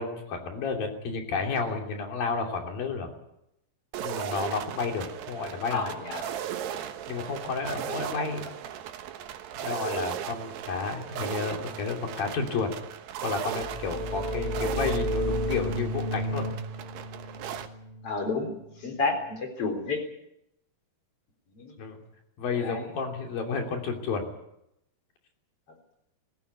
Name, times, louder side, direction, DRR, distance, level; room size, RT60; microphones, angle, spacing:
voice 1, 0.0-3.1 4.0-5.9 7.1-8.5 9.6-12.7 13.2-16.5 21.8-22.0 22.4-24.3, left 4 dB, 60° left, 3 dB, 4.6 m, -31 dB
sound 1, 3.9-17.7, right 10 dB, 80° right, 3.3 m, -37 dB
voice 2, 5.7-6.3 8.0-8.2 18.0-18.5 18.8-20.0 21.5-21.7 22.5-22.9, left 3 dB, 35° left, 6 dB, 4.6 m, -30 dB
sound 2, 13.6-19.1, equal, 15° right, 2.1 m, -32 dB
21.0 x 15.5 x 9.6 m, 0.82 s
omnidirectional pair, 4.7 m